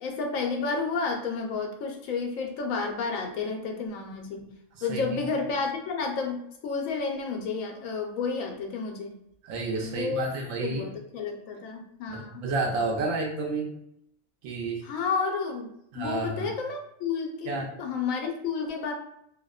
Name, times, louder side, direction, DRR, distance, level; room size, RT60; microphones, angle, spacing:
voice 1, 0.0-4.4 4.8-9.2 9.8-10.3 10.6-12.4 14.8-15.7 15.9-18.9, left 4 dB, 80° left, 3 dB, 1.0 m, -31 dB
voice 2, 9.4-10.8 12.1-13.8 14.4-14.8 15.9-16.4 17.5-17.7, right 3 dB, 80° right, 0 dB, 1.0 m, -30 dB
2.7 x 2.0 x 2.3 m, 0.76 s
omnidirectional pair, 1.4 m